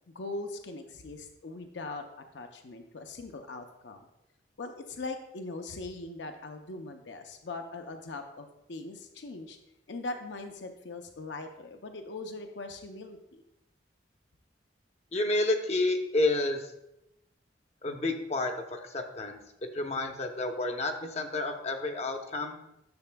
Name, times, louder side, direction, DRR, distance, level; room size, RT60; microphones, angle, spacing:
voice 1, 0.1-2.0 2.3-4.1 4.6-9.6 9.9-13.4, left 2 dB, 75° left, 6 dB, 0.6 m, -40 dB
voice 2, 15.1-16.7 17.8-19.4 19.7-22.6, left 2 dB, 35° left, 5 dB, 0.7 m, -30 dB
10.5 x 6.8 x 2.2 m, 0.86 s
head